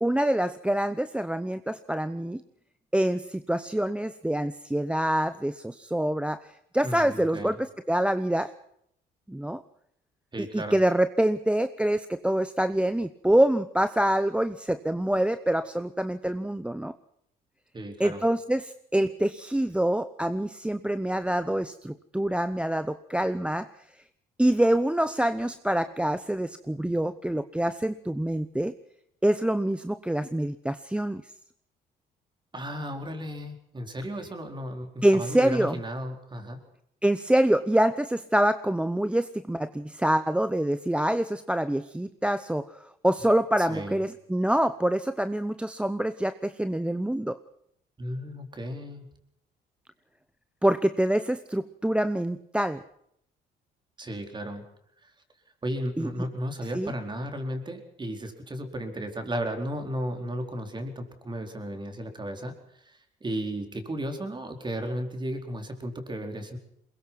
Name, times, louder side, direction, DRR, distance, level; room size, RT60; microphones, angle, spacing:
voice 1, 0.0-2.4 2.9-8.5 9.3-9.6 10.4-16.9 18.0-23.7 24.4-28.7 29.2-31.2 35.0-35.8 37.0-47.4 50.6-52.8 56.0-56.1 56.7-56.9, right 1 dB, 5° right, 11 dB, 0.8 m, -26 dB
voice 2, 6.8-7.6 10.3-10.8 17.7-18.2 32.5-36.6 43.6-44.0 48.0-49.1 54.0-54.6 55.0-55.1 55.6-66.6, equal, 25° right, 5 dB, 4.3 m, -34 dB
22.0 x 21.5 x 6.0 m, 0.72 s
cardioid pair, 85°, 18 cm